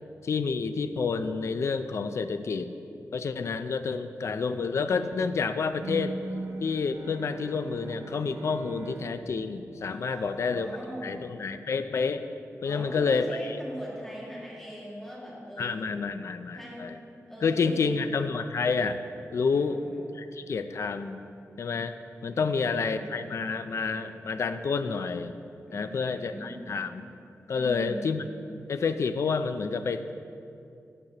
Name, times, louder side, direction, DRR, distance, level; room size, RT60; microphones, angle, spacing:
voice 1, 0.2-2.7 3.1-6.2 6.6-10.8 11.0-12.3 12.6-13.4 15.6-17.0 17.4-19.0 19.3-19.8 20.1-21.2 21.6-22.0 22.2-25.3 25.7-27.1 27.5-28.2 28.7-30.1, left 5 dB, 60° left, 10 dB, 0.4 m, -29 dB
Bowed string instrument, 5.8-10.8, right 2 dB, 70° right, 0.7 m, -40 dB
voice 2, 9.8-11.1 12.6-16.1 16.5-16.9 17.3-18.1 19.5-20.0 22.3-23.1 25.6-26.5 27.5-28.0, equal, 5° left, -6 dB, 2.0 m, -41 dB
13.5 x 6.4 x 2.9 m, 2.6 s
wide cardioid pair, 120°, 6 cm